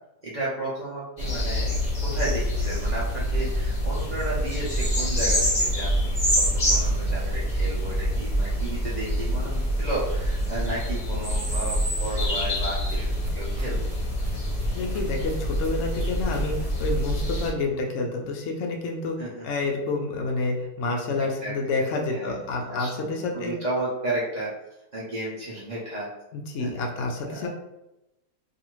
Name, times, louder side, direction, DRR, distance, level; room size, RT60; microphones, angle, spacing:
voice 1, 0.2-1.8 2.0-13.8 19.2-19.5 21.1-21.6 22.1-24.5 24.9-26.1 26.6-26.8 27.2-27.5, right 2 dB, 85° right, -8 dB, 0.3 m, -33 dB
sound 1, 1.2-17.5, equal, 35° left, 0.8 m, -26 dB
sound 2, 11.5-17.0, equal, 65° right, 1.0 m, -41 dB
voice 2, 14.7-19.2 19.4-23.5 26.3-27.5, left 3 dB, 75° left, 1 dB, 0.6 m, -29 dB
2.6 x 2.4 x 2.9 m, 0.93 s
omnidirectional pair, 1.7 m